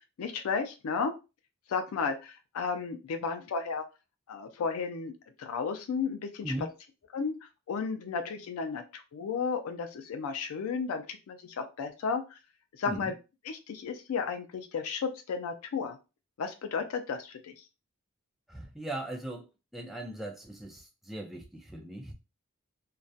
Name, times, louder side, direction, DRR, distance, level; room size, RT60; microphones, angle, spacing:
voice 1, 0.2-1.1 1.7-3.8 4.3-5.1 5.4-6.7 7.1-7.4 7.7-12.2 12.8-13.1 13.4-16.0 16.4-17.5, left 5 dB, 85° left, 6 dB, 0.4 m, -33 dB
voice 2, 18.5-19.5 19.7-22.1, right 1 dB, ahead, 0 dB, 0.4 m, -38 dB
2.3 x 2.1 x 2.6 m, 0.29 s
head